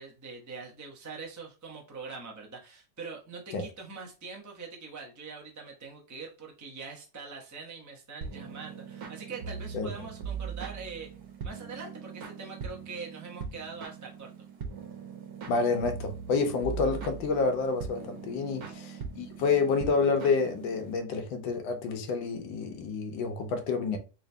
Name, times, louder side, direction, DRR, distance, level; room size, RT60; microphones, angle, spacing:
voice 1, 0.0-11.1 11.4-14.3 18.5-18.8, right 4 dB, 20° right, 0.4 m, -43 dB
sound 1, 8.2-21.0, right 6 dB, 65° right, 1.3 m, -41 dB
voice 2, 15.5-24.0, left 4 dB, 85° left, 1.5 m, -28 dB
3.8 x 2.9 x 3.3 m
omnidirectional pair, 2.0 m